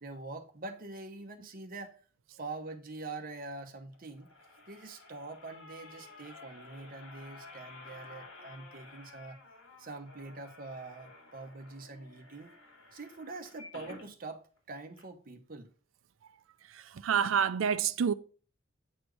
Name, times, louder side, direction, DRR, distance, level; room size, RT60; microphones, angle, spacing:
voice 1, 0.0-2.0 2.4-4.3 4.7-9.4 9.8-12.5 12.9-15.7, right 3 dB, 45° right, 1.0 m, -44 dB
sound 1, 3.9-14.1 14.6-14.7 14.9-15.0, left 3 dB, 85° left, 2.6 m, -52 dB
voice 2, 16.7-18.1, right 7 dB, 90° right, 0.4 m, -28 dB
8.0 x 4.3 x 3.1 m
head